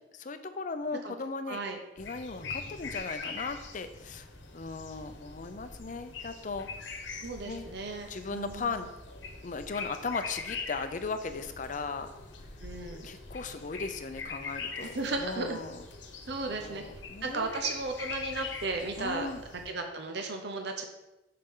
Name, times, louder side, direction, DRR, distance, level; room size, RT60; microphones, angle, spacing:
voice 1, 0.2-1.6 2.0-4.3 4.5-6.7 7.4-7.7 8.1-8.9 9.4-12.1 13.0-15.8 16.5-17.6 19.0-19.4, left 4 dB, 45° left, 9 dB, 0.5 m, -37 dB
voice 2, 1.5-1.8 7.2-8.8 12.6-13.1 14.8-15.6 16.3-16.8 17.2-19.3 19.6-20.8, right 3 dB, 60° right, 4 dB, 0.8 m, -35 dB
sound 1, 2.0-19.7, left 4 dB, 75° left, 1.0 m, -43 dB
7.2 x 6.6 x 3.8 m, 0.98 s
head